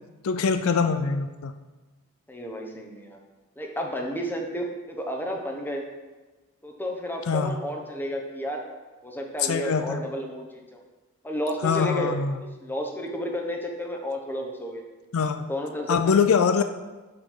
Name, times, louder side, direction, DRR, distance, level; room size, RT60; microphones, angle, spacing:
voice 1, 0.2-1.5 7.3-7.6 9.4-10.0 11.6-12.4 15.1-15.5 15.9-16.6, left 5 dB, 75° left, 8 dB, 0.4 m, -23 dB
voice 2, 2.3-3.2 3.6-5.8 6.6-8.6 9.0-10.8 11.2-12.1 12.4-14.8 15.5-16.1, equal, 10° left, 1 dB, 1.0 m, -32 dB
7.6 x 5.1 x 5.6 m, 1.2 s
head